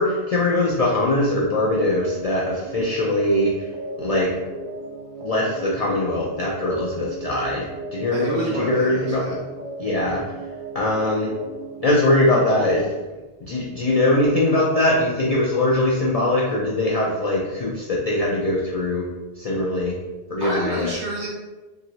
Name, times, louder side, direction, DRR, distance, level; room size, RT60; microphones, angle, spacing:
voice 1, 0.0-3.5 4.0-4.3 5.2-7.6 7.9-9.4 9.8-10.2 10.7-11.3 11.8-12.8 13.4-19.1 19.4-19.9 20.3-20.9, left 1 dB, 60° left, -5 dB, 0.4 m, -21 dB
sound 1, 1.2-12.9, right 3 dB, 60° right, 0.4 m, -35 dB
voice 2, 8.1-9.4 20.4-21.3, right 1 dB, 80° right, -5 dB, 1.3 m, -28 dB
2.9 x 2.8 x 2.7 m, 1.2 s
omnidirectional pair, 1.1 m